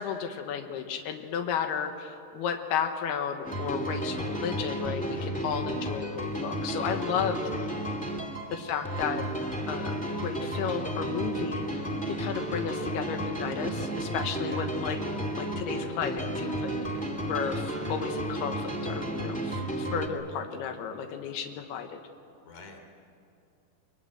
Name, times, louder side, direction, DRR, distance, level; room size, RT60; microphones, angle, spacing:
voice 1, 0.0-7.5 8.5-9.3 9.7-15.0 15.4-16.7 17.3-22.0, left 7 dB, 85° left, 5 dB, 3.2 m, -33 dB
sound 1, 3.4-20.1, right 1 dB, 5° left, 1.2 m, -33 dB
voice 2, 22.4-22.8, left 5 dB, 45° left, 4 dB, 3.9 m, -46 dB
24.0 x 23.5 x 9.4 m, 2.6 s
omnidirectional pair, 4.5 m